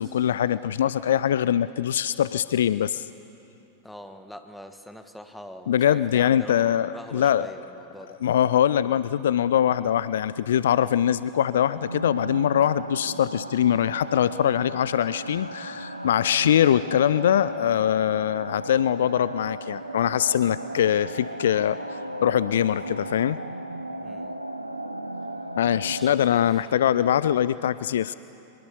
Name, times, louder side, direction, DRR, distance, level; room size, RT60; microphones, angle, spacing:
voice 1, 0.0-3.1 5.7-7.5 8.2-23.4 25.6-28.1, left 10 dB, 60° left, 16 dB, 0.4 m, -23 dB
voice 2, 3.8-8.2 24.0-24.4 25.8-26.7, equal, ahead, 7 dB, 1.6 m, -43 dB
sound 1, 11.8-26.1, right 1 dB, 85° right, 1.0 m, -36 dB
24.0 x 21.5 x 7.1 m, 2.9 s
figure-of-eight pair, 90°, 0 cm